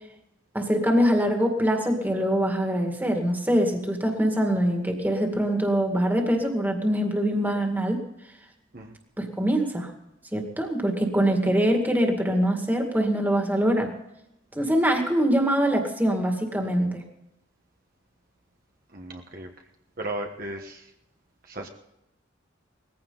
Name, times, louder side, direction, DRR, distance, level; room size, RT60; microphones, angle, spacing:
voice 1, 0.5-8.0 9.2-9.9 10.3-13.9 14.6-17.0, equal, 10° right, 3 dB, 2.1 m, -23 dB
voice 2, 18.9-19.5 20.0-20.8 21.5-21.7, right 1 dB, 45° right, 2 dB, 1.3 m, -35 dB
19.5 x 15.5 x 4.0 m, 0.86 s
head